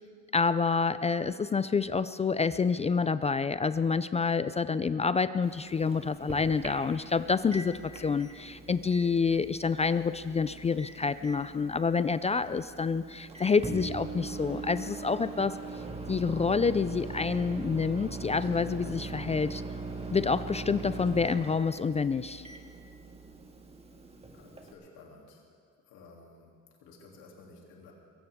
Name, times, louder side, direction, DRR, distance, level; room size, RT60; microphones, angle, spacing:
voice 1, 0.3-15.6 16.1-19.6 20.1-22.4, left 5 dB, 20° left, 14 dB, 0.3 m, -28 dB
Microwave oven, 5.4-24.7, right 3 dB, 15° right, 1.8 m, -41 dB
voice 2, 24.3-25.5 25.8-27.9, left 3 dB, 85° left, -1 dB, 3.0 m, -54 dB
22.5 x 16.5 x 3.6 m, 2.1 s
cardioid pair, 100°, 35 cm